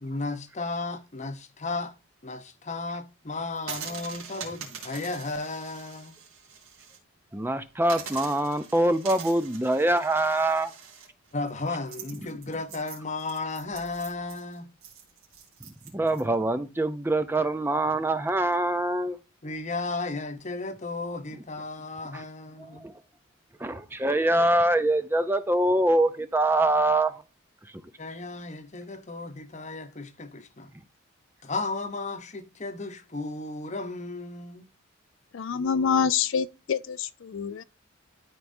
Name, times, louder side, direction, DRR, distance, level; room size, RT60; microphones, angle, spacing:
voice 1, 0.0-1.9 2.2-6.2 11.3-14.7 19.4-22.9 28.0-30.7 31.4-34.7, left 3 dB, 35° left, 0.8 m, -34 dB
sound 1, 3.6-7.0 7.3-7.4 7.8-16.2, right 6 dB, 85° right, 3.0 m, -43 dB
voice 2, 7.3-10.7 15.9-19.2 22.1-22.2 22.6-22.9 23.6-27.1, right 1 dB, 10° right, 0.4 m, -24 dB
voice 3, 35.3-37.6, left 6 dB, 65° left, 0.4 m, -26 dB
12.5 x 4.7 x 2.6 m
head